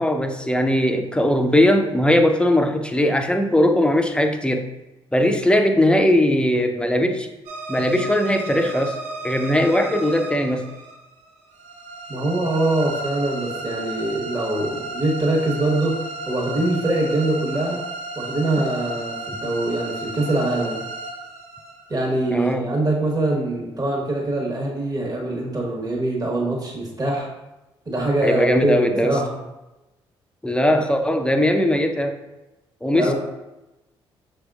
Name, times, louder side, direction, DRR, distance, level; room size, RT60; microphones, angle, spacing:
voice 1, 0.0-4.7 5.1-7.3 7.7-9.0 9.2-10.7 22.3-22.7 28.2-29.2 30.4-32.2 32.8-33.1, left 1 dB, 10° left, 5 dB, 0.5 m, -19 dB
sound 1, 7.5-22.5, right 2 dB, 75° right, 0.6 m, -34 dB
voice 2, 12.1-17.8 18.2-20.8 21.9-27.3 27.9-29.4 32.9-33.1, right 2 dB, 30° right, -3 dB, 1.2 m, -23 dB
5.8 x 3.5 x 2.4 m, 1.0 s
hypercardioid pair, 50°, 12 cm